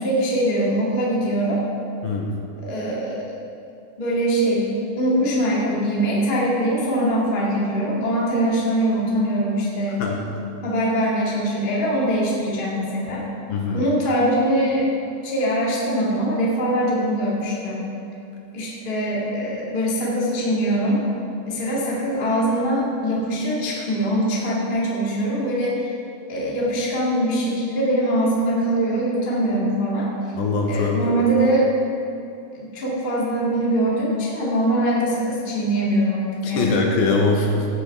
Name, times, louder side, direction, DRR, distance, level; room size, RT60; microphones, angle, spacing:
voice 1, 0.0-1.6 2.6-3.3 4.0-4.7 5.0-10.0 10.6-13.2 13.7-14.9 15.2-17.9 18.5-21.0 21.5-25.9 26.3-30.1 30.7-31.7 32.5-36.8, right 1 dB, 20° left, -6 dB, 1.3 m, -22 dB
voice 2, 13.5-13.8 30.4-31.2 36.4-37.7, left 3 dB, 75° left, 0 dB, 2.6 m, -22 dB
16.5 x 8.9 x 3.6 m, 2.7 s
omnidirectional pair, 4.6 m